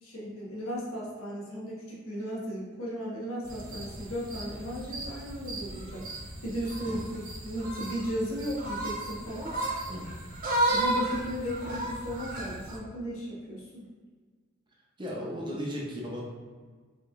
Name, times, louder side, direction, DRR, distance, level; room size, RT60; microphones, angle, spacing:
voice 1, 0.0-6.1 6.4-9.5 10.7-13.9, equal, 75° left, -5 dB, 1.2 m, -35 dB
sound 1, 3.4-12.8, right 1 dB, 45° right, 1.0 m, -34 dB
voice 2, 15.0-16.2, equal, 25° right, -3 dB, 0.7 m, -36 dB
4.8 x 3.0 x 2.4 m, 1.5 s
head